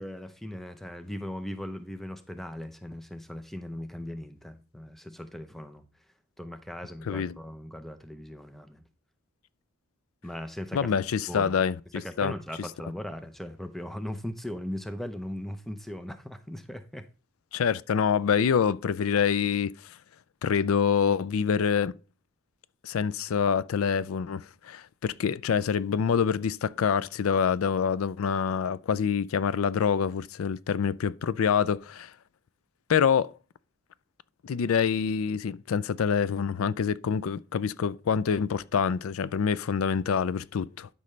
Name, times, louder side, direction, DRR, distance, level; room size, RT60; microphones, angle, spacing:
voice 1, 0.0-5.8 6.4-8.8 10.2-10.9 11.3-11.5 11.9-17.1, left 1 dB, ahead, 0.6 m, -38 dB
voice 2, 7.1-7.4 10.7-11.8 12.2-12.3 17.5-19.7 20.4-21.9 22.8-32.1 32.9-33.3 34.4-40.9, left 7 dB, 90° left, 0.4 m, -26 dB
12.0 x 5.5 x 3.2 m
head